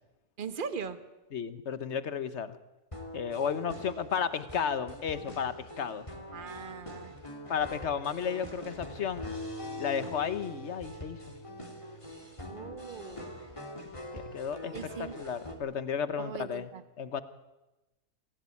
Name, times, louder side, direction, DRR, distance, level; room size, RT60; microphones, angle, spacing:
voice 1, 0.4-1.0 6.3-7.1 12.5-13.3 14.7-15.2 16.2-16.8, right 6 dB, 35° right, 11 dB, 1.3 m, -40 dB
voice 2, 1.3-2.6 3.1-6.1 7.5-9.2 9.8-11.3 14.1-16.7 17.0-17.2, left 7 dB, 50° left, 12 dB, 1.3 m, -33 dB
sound 1, 2.9-15.5, left 1 dB, 20° left, 2.8 m, -43 dB
26.5 x 16.5 x 8.5 m, 1.0 s
omnidirectional pair, 1.6 m